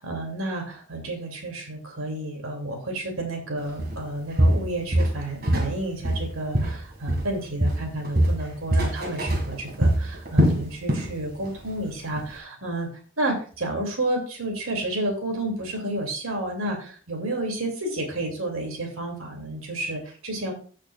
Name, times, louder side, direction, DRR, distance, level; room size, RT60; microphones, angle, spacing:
voice 1, 0.0-12.9 13.2-20.5, right 1 dB, 85° right, 2 dB, 2.6 m, -31 dB
Walk footsteps, 3.8-4.0 4.4-5.8 6.0-7.3 7.6-11.1 11.4-11.7 12.2-12.3, equal, 45° right, 1.9 m, -23 dB
14.0 x 6.6 x 2.4 m, 0.40 s
head